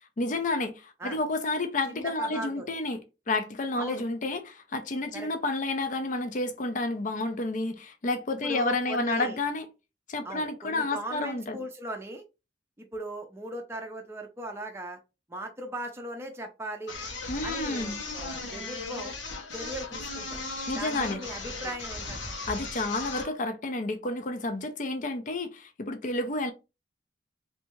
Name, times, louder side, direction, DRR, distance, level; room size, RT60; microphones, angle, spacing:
voice 1, 0.2-3.0 3.3-9.6 10.1-11.6 17.3-17.9 20.7-21.2 22.5-26.5, left 2 dB, 45° left, 0.5 m, -30 dB
voice 2, 1.9-2.7 3.8-4.0 5.1-5.3 8.4-9.4 10.2-12.2 12.8-15.0 15.3-16.9 17.4-19.2 19.5-20.4 20.8-22.4, right 1 dB, 15° right, 0.5 m, -38 dB
sound 1, 16.9-23.4, left 3 dB, 85° left, 1.2 m, -37 dB
3.2 x 2.7 x 3.0 m
head